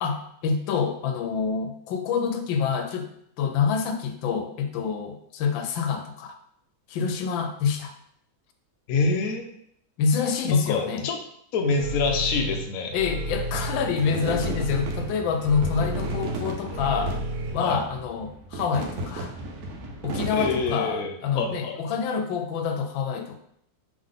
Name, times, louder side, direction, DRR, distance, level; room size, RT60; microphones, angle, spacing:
voice 1, 0.0-3.1 3.4-6.4 6.9-7.9 10.0-11.1 12.9-17.2 17.5-19.3 20.0-23.4, left 6 dB, 85° left, 6 dB, 1.3 m, -27 dB
voice 2, 8.9-9.4 10.5-11.2 11.5-13.0 17.6-17.8 20.4-21.8, left 4 dB, 65° left, 3 dB, 0.9 m, -26 dB
sound 1, 11.7-17.5, right 1 dB, 45° right, 1.3 m, -32 dB
sound 2, 13.2-20.7, right 2 dB, 65° right, 1.0 m, -35 dB
3.6 x 3.4 x 3.7 m, 0.70 s
omnidirectional pair, 2.0 m